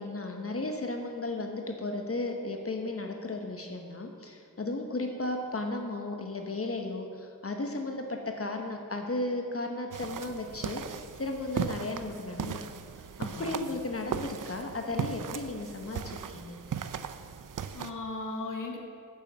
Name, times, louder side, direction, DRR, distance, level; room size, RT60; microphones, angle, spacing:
voice 1, 0.0-12.6 13.2-16.6, left 2 dB, 40° left, 3 dB, 1.1 m, -35 dB
sound 1, 9.9-17.9, right 7 dB, 65° right, 0.6 m, -37 dB
voice 2, 13.2-13.8 17.7-18.8, left 3 dB, 65° left, 1 dB, 1.5 m, -37 dB
10.0 x 7.2 x 7.3 m, 2.3 s
wide cardioid pair, 100°, 35 cm